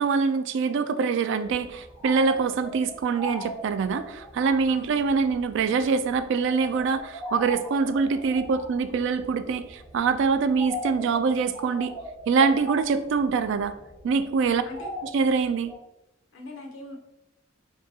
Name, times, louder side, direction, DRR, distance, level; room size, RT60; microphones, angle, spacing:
voice 1, 0.0-11.9 12.3-13.8 14.0-14.6 15.1-15.7, right 5 dB, 65° right, 11 dB, 0.3 m, -24 dB
sound 1, 1.4-15.8, equal, 35° right, 1.0 m, -40 dB
voice 2, 4.7-5.0 14.4-14.9 16.3-17.0, left 2 dB, 70° left, 0 dB, 0.9 m, -41 dB
5.8 x 2.3 x 2.8 m, 0.88 s
head